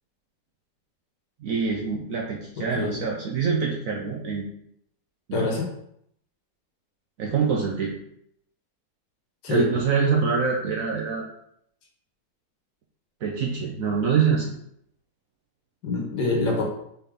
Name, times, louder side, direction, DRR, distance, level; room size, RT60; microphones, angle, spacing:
voice 1, 1.4-4.4 5.3-5.5 7.2-8.0 9.5-11.3 13.2-14.5, right 5 dB, 65° right, -1 dB, 0.8 m, -25 dB
voice 2, 2.6-3.0 5.3-5.7 9.4-9.7 15.8-16.7, left 3 dB, 70° left, -1 dB, 1.6 m, -25 dB
4.2 x 3.6 x 3.4 m, 0.72 s
omnidirectional pair, 1.9 m